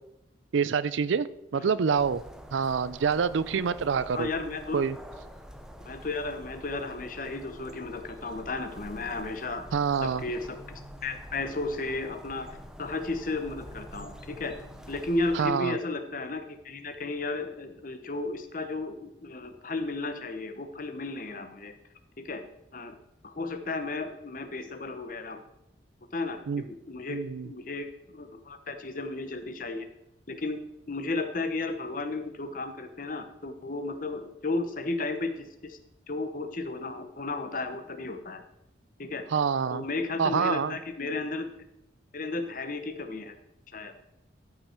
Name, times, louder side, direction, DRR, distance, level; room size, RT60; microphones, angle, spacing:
voice 1, 0.5-2.2 2.5-4.3 4.7-5.0 9.7-10.2 15.3-15.8 26.5-26.6 27.1-27.5 39.3-39.8 40.2-40.8, right 6 dB, 80° right, 17 dB, 0.4 m, -26 dB
sound 1, 2.0-15.5, equal, 5° right, 0.6 m, -46 dB
voice 2, 4.1-4.9 5.8-9.7 10.0-14.6 14.9-21.7 22.2-22.4 22.7-23.0 23.2-25.4 26.1-27.9 28.1-29.9 30.3-30.6 30.9-35.8 36.1-38.4 39.0-39.2 39.7-41.5 42.1-43.3 43.7-43.9, left 3 dB, 45° left, 8 dB, 0.9 m, -34 dB
13.0 x 5.6 x 4.4 m, 0.84 s
head